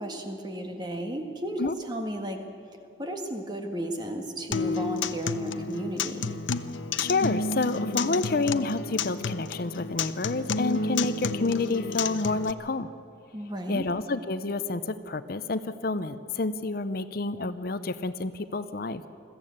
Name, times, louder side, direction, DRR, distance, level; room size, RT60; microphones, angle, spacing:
voice 1, 0.0-1.6 1.9-2.4 3.0-6.3 10.8-10.9 13.3-13.9, right 1 dB, 25° right, 4 dB, 1.7 m, -34 dB
Acoustic guitar, 4.5-12.5, left 4 dB, 85° left, 0.7 m, -31 dB
voice 2, 7.0-12.9 13.7-19.0, left 3 dB, 50° left, 12 dB, 0.7 m, -29 dB
21.5 x 14.5 x 8.7 m, 2.6 s
head